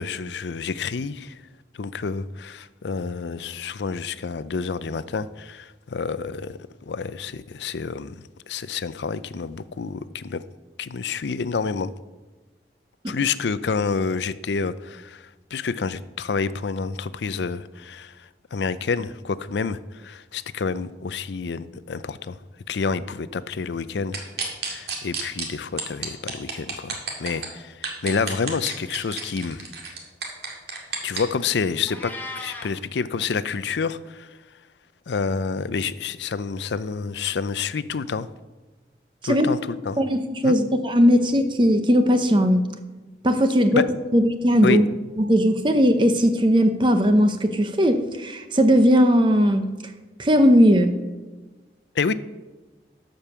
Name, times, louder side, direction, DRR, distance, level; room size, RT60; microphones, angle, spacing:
voice 1, 0.0-1.4 1.7-6.6 6.9-10.4 10.8-11.9 13.1-22.4 22.7-24.3 24.7-29.7 31.0-34.3 35.1-38.3 39.2-40.0 40.4-40.6 43.7-43.9 44.6-44.8 52.0-52.1, left 5 dB, 80° left, 15 dB, 0.5 m, -28 dB
sound 1, 24.1-25.4 25.8-27.5 27.8-31.2, right 5 dB, 65° right, 2.1 m, -30 dB
Meow, 31.9-32.7, left 2 dB, 10° left, 1.0 m, -36 dB
voice 2, 40.0-42.6 43.2-43.8 44.1-44.8 45.2-49.6 50.2-50.9, equal, 25° right, 7 dB, 0.7 m, -18 dB
12.0 x 5.3 x 6.8 m, 1.2 s
head